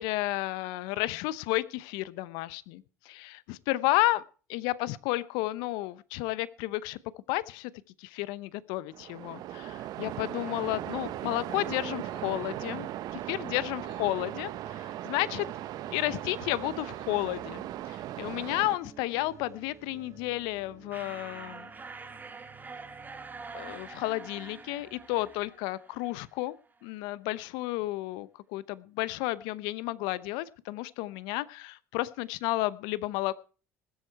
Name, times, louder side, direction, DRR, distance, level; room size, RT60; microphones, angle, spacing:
voice 1, 0.0-4.2 4.5-7.0 7.3-7.7 8.0-15.5 15.9-21.7 23.5-26.6 26.8-33.3, left 18 dB, 70° left, 18 dB, 0.8 m, -32 dB
Waves surf, 8.9-18.8, right 13 dB, 55° right, 1.0 m, -38 dB
sound 1, 10.6-25.5, right 8 dB, 40° right, 1.6 m, -53 dB
sound 2, 20.9-26.4, right 4 dB, 20° right, 3.2 m, -45 dB
20.5 x 8.0 x 4.6 m, 0.37 s
hypercardioid pair, 75°, 8 cm